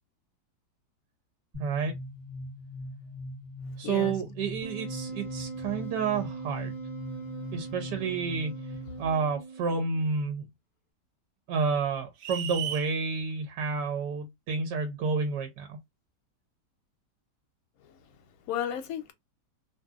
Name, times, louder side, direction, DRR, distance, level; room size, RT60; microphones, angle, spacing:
sound 1, 1.5-9.1, left 1 dB, 25° right, 1.1 m, -41 dB
voice 1, 1.6-1.9 3.8-6.7 7.5-8.7 9.0-10.4 11.5-15.8, right 5 dB, 90° right, 1.2 m, -30 dB
voice 2, 3.8-4.2 7.2-7.5 17.8-19.1, left 10 dB, 70° left, 1.0 m, -36 dB
Wind instrument woodwind instrument, 4.6-10.0, right 4 dB, 45° left, 0.5 m, -41 dB
sound 2, 12.2-12.9, right 9 dB, 70° right, 0.7 m, -34 dB
2.7 x 2.6 x 2.3 m
omnidirectional pair, 1.8 m